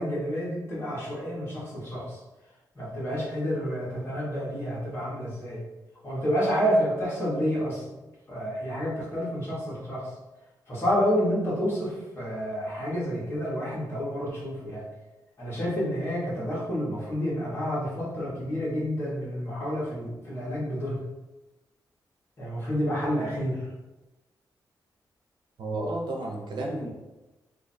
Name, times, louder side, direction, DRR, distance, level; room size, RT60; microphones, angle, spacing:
voice 1, 0.0-2.2 2.7-5.6 6.0-7.9 8.3-10.1 10.7-14.8 15.4-21.0 22.4-23.7, equal, 35° left, -7 dB, 1.4 m, -29 dB
voice 2, 25.6-26.9, right 2 dB, 85° right, -1 dB, 0.8 m, -32 dB
2.8 x 2.6 x 4.3 m, 1.1 s
wide cardioid pair, 165°, 8 cm